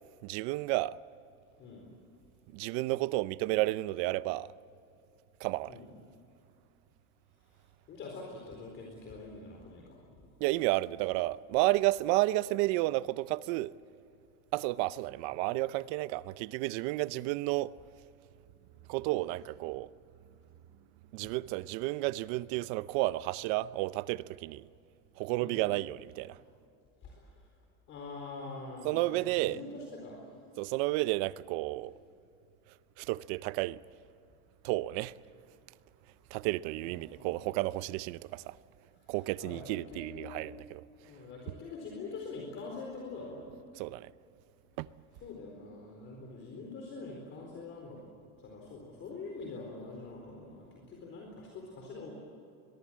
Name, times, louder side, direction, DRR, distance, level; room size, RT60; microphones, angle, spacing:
voice 1, 0.2-1.0 2.5-4.5 5.4-5.8 10.4-13.7 14.5-17.7 18.9-19.9 21.1-24.7 25.2-26.4 28.8-29.6 30.6-31.9 33.0-33.8 34.6-35.1 36.3-38.6 39.1-40.8 43.8-44.1 44.8-44.9, right 18 dB, 80° right, 0.8 m, -31 dB
voice 2, 1.6-1.9 5.7-5.9 7.4-10.0 21.7-21.8 25.4-25.7 26.3-26.4 27.0-27.5 27.9-30.3 31.9-32.0 36.8-37.3 38.9-40.5 41.0-43.5 45.2-48.0 48.4-52.1, left 3 dB, 35° left, 4.3 m, -45 dB
23.5 x 22.5 x 7.6 m
cardioid pair, 180°, 33 cm